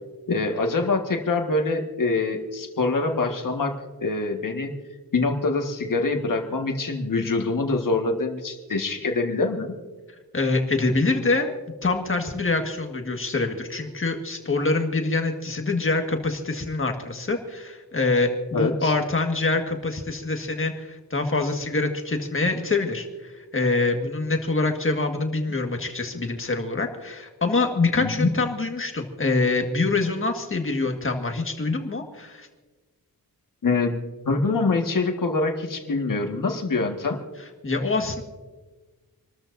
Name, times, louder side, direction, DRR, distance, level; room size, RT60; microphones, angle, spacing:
voice 1, 0.3-4.7 5.1-9.7 18.5-18.9 28.0-28.3 33.6-37.2, left 3 dB, 60° left, 3 dB, 1.7 m, -25 dB
voice 2, 10.3-11.5 11.8-32.5 37.6-38.2, left 3 dB, 35° left, 4 dB, 1.7 m, -25 dB
27.5 x 13.5 x 2.7 m, 1.3 s
wide cardioid pair, 125°, 36 cm